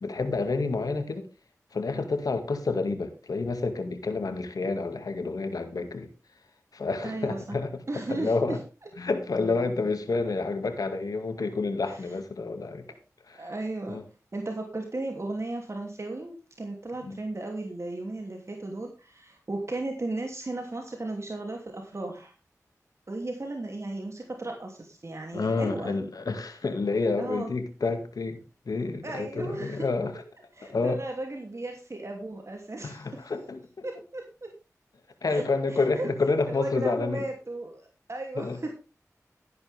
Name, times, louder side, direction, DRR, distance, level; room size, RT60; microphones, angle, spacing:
voice 1, 0.0-1.3 1.7-6.1 6.7-7.8 8.1-8.6 9.0-12.8 13.3-13.5 13.9-14.0 17.1-17.2 25.3-30.1 30.7-31.0 32.8-33.8 35.2-37.2 38.4-38.6, left 3 dB, 85° left, 2.2 m, -29 dB
voice 2, 7.0-7.6 7.9-8.6 11.9-12.0 13.3-14.0 14.3-22.3 23.1-26.0 27.2-27.5 29.0-29.9 30.5-33.3 33.8-34.5 35.3-36.1 36.5-38.7, right 2 dB, 50° right, 2.9 m, -35 dB
13.5 x 10.5 x 3.6 m
cardioid pair, 45°, 6 cm